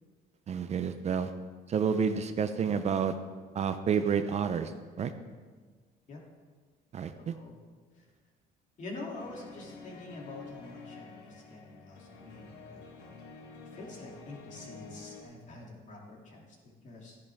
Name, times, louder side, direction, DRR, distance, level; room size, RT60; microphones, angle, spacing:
voice 1, 0.5-1.3 1.7-3.1 3.5-4.7 5.0-5.1 6.9-7.1, right 6 dB, 40° right, 10 dB, 0.6 m, -29 dB
voice 2, 7.1-8.1 8.8-13.1 13.7-17.2, left 2 dB, 45° left, -1 dB, 2.7 m, -46 dB
sound 1, 9.1-15.2, left 4 dB, 80° left, 1.5 m, -49 dB
13.5 x 10.5 x 3.5 m, 1.4 s
cardioid pair, 110°, 17 cm